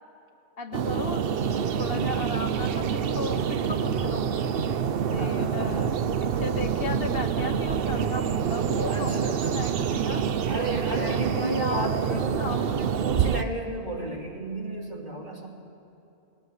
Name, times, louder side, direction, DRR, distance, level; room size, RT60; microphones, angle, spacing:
voice 1, 0.6-1.2 1.8-4.3 5.1-5.9 6.2-10.3 11.0-13.0, left 3 dB, 55° left, 6 dB, 1.2 m, -35 dB
sound 1, 0.7-13.4, right 7 dB, 60° right, 0.9 m, -27 dB
voice 2, 5.2-6.1 8.9-9.5 10.5-15.5, right 1 dB, 40° right, -2 dB, 3.1 m, -33 dB
20.5 x 18.0 x 8.2 m, 3.0 s
omnidirectional pair, 1.2 m